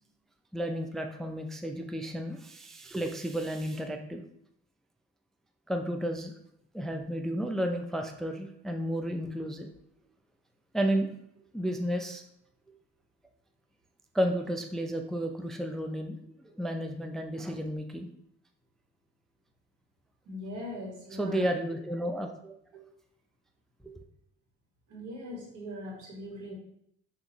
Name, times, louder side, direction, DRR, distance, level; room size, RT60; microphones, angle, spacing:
voice 1, 0.5-4.2 5.7-6.3 6.7-9.7 10.7-11.1 11.5-12.2 14.1-18.1 21.2-22.6 23.8-23.9, equal, ahead, 4 dB, 0.4 m, -32 dB
voice 2, 20.2-21.4 22.7-22.9 24.9-26.5, left 1 dB, 80° right, -3 dB, 1.5 m, -40 dB
5.9 x 2.6 x 2.9 m, 0.71 s
cardioid pair, 90°, 30 cm